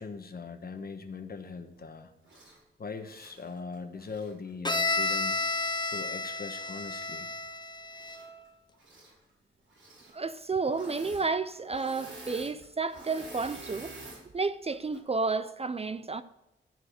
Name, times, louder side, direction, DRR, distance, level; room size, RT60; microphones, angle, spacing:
voice 1, 0.0-2.1 2.8-5.4 5.9-7.3, left 4 dB, 45° left, 1.2 m, -40 dB
Engine / Mechanisms, 2.2-2.6 3.0-4.3 5.1-5.2 7.9-8.5 8.7-9.1 9.7-10.1 10.7-11.3 11.5-14.2 14.7-15.0, right 2 dB, 65° right, 5.1 m, -48 dB
Bowed string instrument, 4.6-8.4, left 3 dB, 20° left, 0.8 m, -31 dB
voice 2, 10.1-13.9 14.3-16.2, right 4 dB, 30° right, 0.4 m, -31 dB
13.5 x 4.7 x 8.0 m
wide cardioid pair, 100°, 21 cm